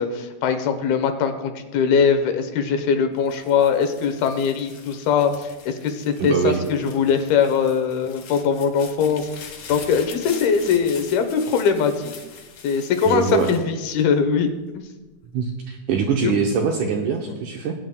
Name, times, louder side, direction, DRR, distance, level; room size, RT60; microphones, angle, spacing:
voice 1, 0.0-12.1 12.6-14.8 16.2-16.3 17.3-17.4, left 6 dB, 80° left, 7 dB, 2.8 m, -21 dB
sound 1, 3.2-14.5 15.1-15.6, left 6 dB, 60° left, 2.2 m, -43 dB
voice 2, 6.2-6.6 13.0-13.5 15.3-17.7, right 6 dB, 80° right, 1 dB, 1.8 m, -23 dB
20.0 x 8.8 x 2.2 m, 1.2 s
omnidirectional pair, 4.3 m